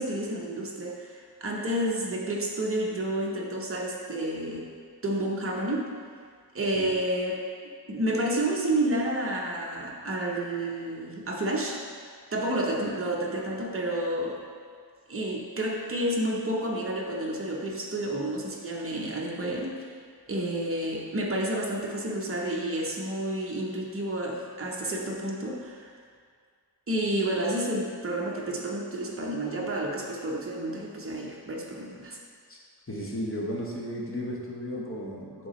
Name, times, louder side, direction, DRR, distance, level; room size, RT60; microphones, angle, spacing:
voice 1, 0.0-4.7 5.0-5.9 6.5-7.4 7.9-11.8 12.3-14.4 15.1-19.9 20.3-25.9 26.9-32.2, right 1 dB, 35° right, -2 dB, 1.0 m, -30 dB
voice 2, 32.9-35.5, equal, 30° left, -3 dB, 1.2 m, -34 dB
9.7 x 3.8 x 3.2 m, 2.1 s
wide cardioid pair, 90°, 40 cm